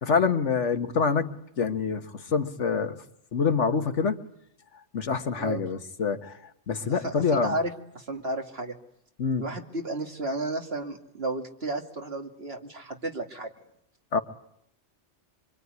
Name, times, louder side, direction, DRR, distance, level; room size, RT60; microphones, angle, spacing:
voice 1, 0.0-1.3 1.6-3.0 3.3-4.2 4.9-6.4 6.7-7.6 9.2-9.5 14.1-14.2, left 5 dB, 80° left, 7 dB, 1.7 m, -26 dB
voice 2, 7.0-8.8 9.4-13.5, right 2 dB, 55° right, 3 dB, 2.7 m, -33 dB
25.5 x 24.5 x 9.6 m, 0.74 s
omnidirectional pair, 1.2 m